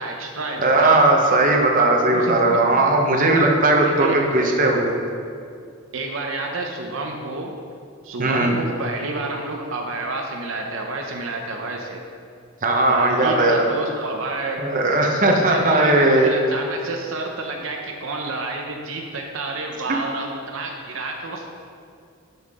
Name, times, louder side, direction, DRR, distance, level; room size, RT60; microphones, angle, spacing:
voice 1, 0.0-1.0 2.1-2.6 3.8-4.2 5.9-7.5 8.0-12.0 12.9-14.7 15.3-21.5, right 2 dB, 70° right, 1 dB, 0.8 m, -29 dB
voice 2, 0.6-4.9 8.2-8.6 12.6-13.7 14.6-16.3, right 2 dB, 40° right, 1 dB, 0.9 m, -18 dB
12.0 x 5.8 x 3.7 m, 2.3 s
head